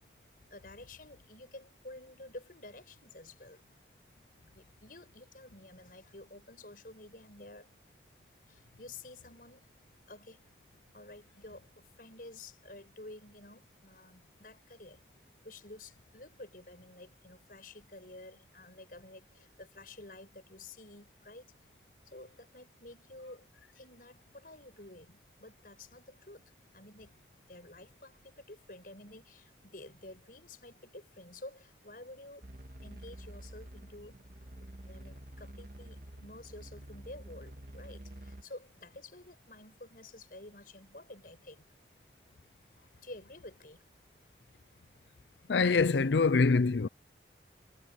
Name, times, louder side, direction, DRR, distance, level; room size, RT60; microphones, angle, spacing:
voice 1, 0.5-3.6 4.5-7.7 8.5-9.7 10.1-10.4 10.9-15.0 15.4-21.5 22.0-26.4 26.7-27.1 27.5-32.5 32.8-34.2 34.6-41.7 43.0-43.8, left 2 dB, 50° left, 6.6 m, -51 dB
sound 1, 32.4-38.4, equal, 50° right, 1.9 m, -48 dB
voice 2, 45.5-46.9, left 4 dB, 85° left, 0.6 m, -25 dB
head